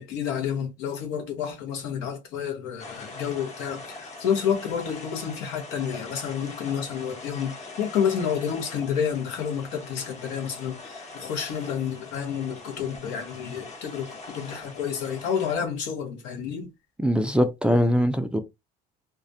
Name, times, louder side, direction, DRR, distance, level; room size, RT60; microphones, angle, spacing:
voice 1, 0.0-16.7, left 8 dB, 90° left, 0.9 m, -29 dB
sound 1, 2.8-15.6, left 3 dB, 40° left, 0.9 m, -42 dB
voice 2, 17.0-18.4, equal, 5° right, 0.3 m, -22 dB
2.4 x 2.1 x 2.6 m
cardioid pair, 110°, 18 cm